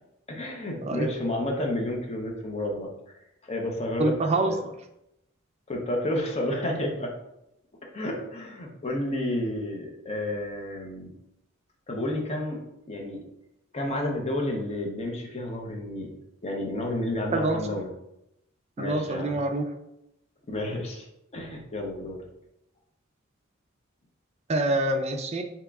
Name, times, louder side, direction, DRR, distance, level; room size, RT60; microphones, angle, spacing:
voice 1, 0.3-4.1 4.4-4.6 5.7-7.1 7.9-11.1 11.9-13.2 13.7-16.1 16.4-17.9 18.8-19.4 20.5-21.1 21.3-22.2, left 1 dB, 30° left, 0 dB, 0.7 m, -31 dB
voice 2, 4.0-4.5 17.3-17.6 18.8-19.6 24.5-25.4, right 2 dB, 30° right, 4 dB, 0.4 m, -25 dB
3.6 x 2.9 x 3.5 m, 0.84 s
head